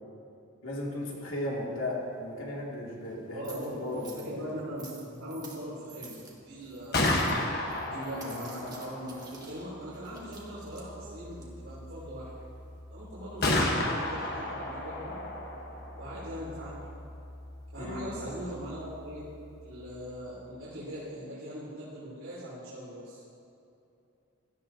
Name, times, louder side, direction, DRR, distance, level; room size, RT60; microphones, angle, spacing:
voice 1, 0.6-4.5 8.2-8.4 17.8-18.1, left 1 dB, 80° left, -3 dB, 2.5 m, -36 dB
sound 1, 0.8-12.8, right 4 dB, 20° right, 1.5 m, -53 dB
voice 2, 3.3-6.2 6.4-7.1 7.8-12.3 12.9-15.2 15.9-16.8 17.7-19.3 19.6-23.2, equal, 75° right, -10 dB, 3.2 m, -40 dB
Gunshot gunfire, 6.7-20.5, left 2 dB, 45° left, 1.3 m, -35 dB
16.5 x 13.5 x 2.8 m, 2.6 s
head